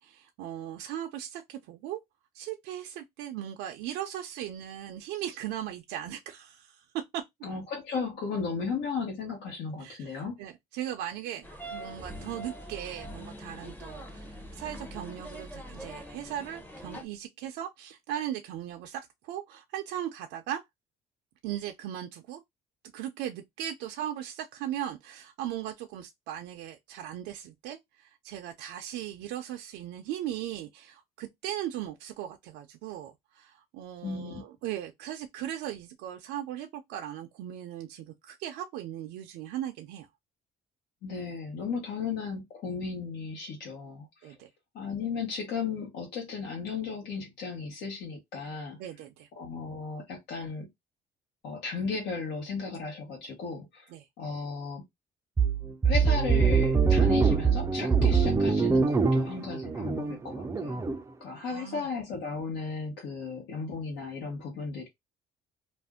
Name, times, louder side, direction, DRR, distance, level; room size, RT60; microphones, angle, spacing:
voice 1, 0.0-2.0 2.3-7.2 9.8-20.6 21.4-22.4 22.9-40.1 44.2-44.5 48.8-49.3 53.9-54.1 61.3-61.9, right 11 dB, 90° right, 0.4 m, -38 dB
voice 2, 7.4-10.4 34.0-34.4 41.0-44.3 44.7-48.8 49.3-50.7 51.4-53.9 54.2-54.8 55.8-60.9 61.2-64.9, left 5 dB, 80° left, 1.0 m, -35 dB
sound 1, 11.4-17.0, equal, 10° left, 0.7 m, -43 dB
sound 2, 55.4-61.0, right 5 dB, 15° right, 0.3 m, -24 dB
2.5 x 2.1 x 3.5 m
cardioid pair, 110°, 17 cm